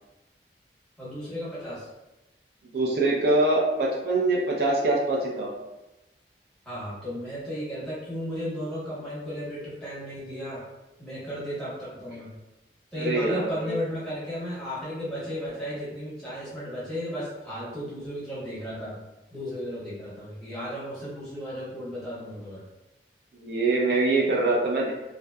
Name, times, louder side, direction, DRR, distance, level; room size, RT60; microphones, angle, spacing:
voice 1, 1.0-1.9 6.6-10.7 11.0-12.4 12.9-19.0 19.3-22.7, equal, 5° left, -10 dB, 0.9 m, -34 dB
voice 2, 2.7-5.5 13.0-13.8 23.3-24.9, right 2 dB, 65° right, -3 dB, 0.4 m, -24 dB
2.6 x 2.1 x 2.2 m, 1.0 s
head